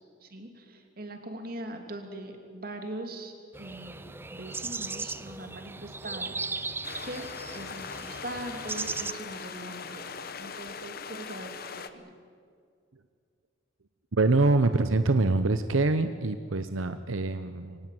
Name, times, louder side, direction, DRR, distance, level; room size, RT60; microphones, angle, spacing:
voice 1, 0.2-3.3 3.6-6.7 7.0-7.3 7.5-12.1, right 1 dB, 50° right, 5 dB, 3.0 m, -41 dB
sound 1, 3.5-9.1, right 3 dB, 10° right, 0.6 m, -37 dB
sound 2, 6.8-11.9, left 5 dB, 50° left, 1.1 m, -40 dB
voice 2, 14.1-17.8, right 3 dB, 85° right, 10 dB, 0.9 m, -25 dB
23.5 x 18.0 x 9.4 m, 2.2 s
head